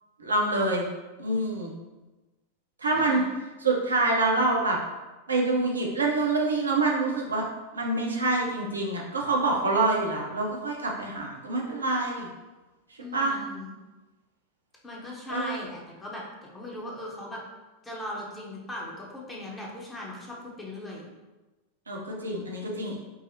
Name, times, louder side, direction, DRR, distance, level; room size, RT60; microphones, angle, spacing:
voice 1, 0.2-0.9 1.2-1.7 2.8-3.2 3.6-4.8 5.3-7.4 7.7-12.3 13.1-13.4 15.3-15.6 21.9-23.0, right 2 dB, 75° right, -1 dB, 0.6 m, -26 dB
voice 2, 2.9-3.3 13.0-13.8 14.8-16.2 16.5-17.4 17.8-21.1, left 1 dB, 15° left, -3 dB, 0.8 m, -38 dB
4.7 x 2.0 x 2.8 m, 1.1 s
figure-of-eight pair, 90°, 0 cm